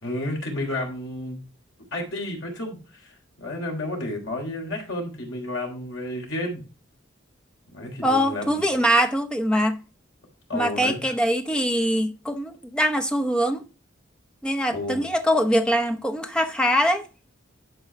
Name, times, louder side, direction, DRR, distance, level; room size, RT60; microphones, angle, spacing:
voice 1, 0.0-1.4 1.9-6.6 7.7-8.6 10.5-11.1 14.7-15.0, left 1 dB, 70° left, 3.6 m, -31 dB
voice 2, 8.0-9.8 10.5-13.6 14.4-17.0, equal, 5° left, 0.8 m, -23 dB
11.0 x 4.7 x 4.4 m
head